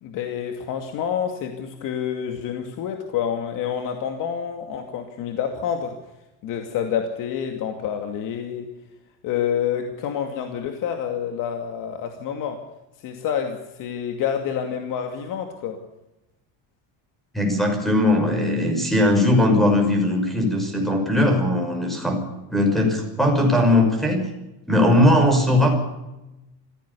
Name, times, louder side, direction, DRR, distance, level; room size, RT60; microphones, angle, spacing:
voice 1, 0.0-6.0 6.4-8.7 9.2-12.6 13.0-15.8, left 8 dB, 55° left, 4 dB, 2.5 m, -28 dB
voice 2, 17.3-22.2 22.5-24.2 24.7-25.7, left 1 dB, ahead, 3 dB, 6.0 m, -19 dB
25.0 x 16.5 x 7.0 m, 0.96 s
cardioid pair, 160°, 39 cm